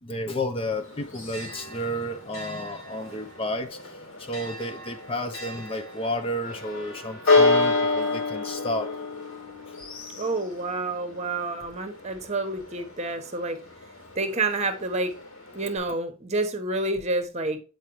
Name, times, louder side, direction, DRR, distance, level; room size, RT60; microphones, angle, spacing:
voice 1, 0.0-8.9, left 1 dB, 25° left, 0.5 m, -32 dB
Church bell, 0.7-15.8, left 3 dB, 85° left, 3.3 m, -30 dB
voice 2, 10.2-13.6 14.1-15.2 15.5-17.6, right 2 dB, 35° right, 1.1 m, -28 dB
8.3 x 4.6 x 3.0 m
head